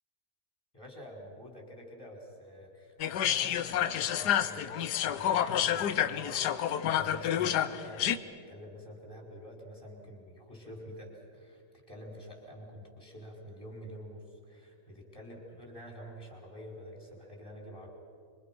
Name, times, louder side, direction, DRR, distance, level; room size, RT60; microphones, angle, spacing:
voice 1, 0.7-8.2 8.5-17.9, equal, 10° left, -1 dB, 5.2 m, -48 dB
sound 1, 3.0-8.2, left 10 dB, 70° left, 1.3 m, -29 dB
26.5 x 25.5 x 6.1 m, 2.5 s
omnidirectional pair, 1.9 m